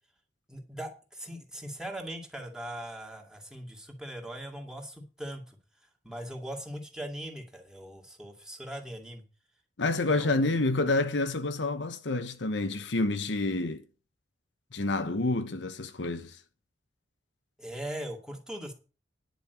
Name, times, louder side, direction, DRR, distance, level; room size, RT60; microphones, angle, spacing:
voice 1, 0.5-5.6 6.0-9.2 9.8-10.7 17.6-18.7, right 1 dB, 5° right, 2.4 m, -40 dB
voice 2, 9.8-13.8 14.7-16.4, left 2 dB, 75° left, 1.0 m, -28 dB
10.5 x 5.5 x 8.0 m
head